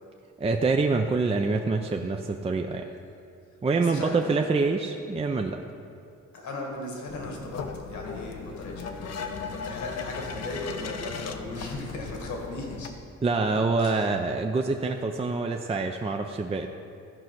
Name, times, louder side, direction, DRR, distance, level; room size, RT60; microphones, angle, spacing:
voice 1, 0.4-2.9 3.6-5.6 13.2-16.7, right 3 dB, 20° right, 4 dB, 0.5 m, -26 dB
voice 2, 3.7-4.4 6.3-12.9 13.8-14.1 16.4-16.5, left 2 dB, 70° left, 0 dB, 2.1 m, -37 dB
sound 1, 7.1-12.9, left 5 dB, 55° left, 0.8 m, -38 dB
13.0 x 5.0 x 5.9 m, 2.5 s
cardioid pair, 90°, 30 cm